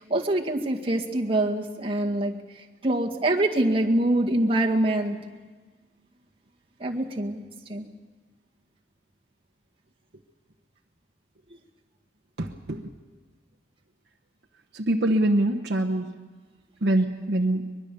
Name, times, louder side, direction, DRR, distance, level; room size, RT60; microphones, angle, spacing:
voice 1, 0.0-2.4 2.8-5.2 6.8-7.4 7.7-7.9, right 1 dB, 30° right, 0 dB, 1.8 m, -24 dB
voice 2, 12.4-12.8 14.7-16.1 16.8-17.7, right 1 dB, 60° right, 0 dB, 1.0 m, -24 dB
23.5 x 21.5 x 6.9 m, 1.4 s
head